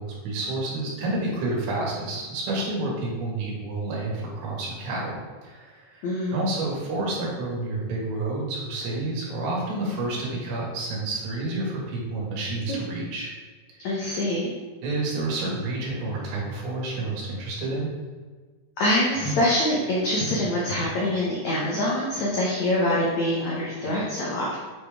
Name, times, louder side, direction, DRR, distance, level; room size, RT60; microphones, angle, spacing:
voice 1, 0.0-6.1 6.3-13.3 13.7-13.8 14.8-17.9, right 2 dB, 85° right, -3 dB, 3.9 m, -29 dB
voice 2, 6.0-6.4 12.7-12.8 13.8-14.5 18.8-24.6, left 1 dB, 85° left, -5 dB, 1.6 m, -25 dB
8.8 x 5.1 x 3.5 m, 1.4 s
omnidirectional pair, 4.8 m